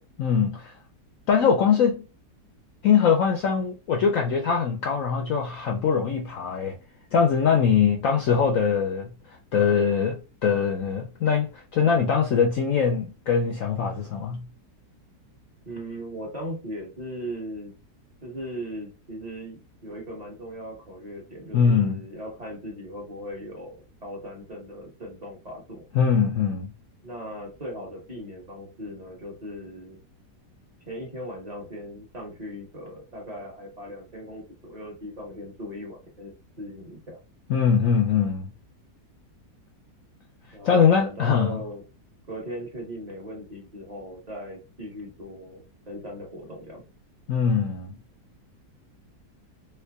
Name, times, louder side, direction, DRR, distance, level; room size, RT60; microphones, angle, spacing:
voice 1, 0.2-0.7 1.3-2.0 2.8-6.8 7.1-9.1 9.5-14.5 21.5-21.9 25.9-26.7 37.5-38.5 40.6-41.6 47.3-47.9, left 6 dB, 65° left, 0.8 m, -22 dB
voice 2, 15.6-17.7 18.2-25.8 27.0-30.0 30.8-37.2 40.5-41.8 42.3-46.8, equal, 25° right, 1.2 m, -38 dB
3.3 x 3.1 x 2.3 m
omnidirectional pair, 1.8 m